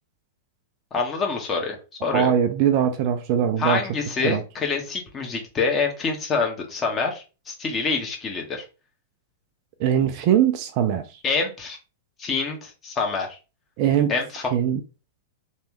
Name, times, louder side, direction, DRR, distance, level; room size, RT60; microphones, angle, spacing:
voice 1, 0.9-2.3 3.6-8.6 11.2-11.8 12.2-13.3 14.1-14.5, left 4 dB, 20° left, 1.2 m, -26 dB
voice 2, 2.1-3.8 4.2-4.4 9.8-11.0 13.8-14.1 14.5-14.8, right 9 dB, 40° right, 0.5 m, -21 dB
3.4 x 3.3 x 2.9 m
figure-of-eight pair, 100°, 0 cm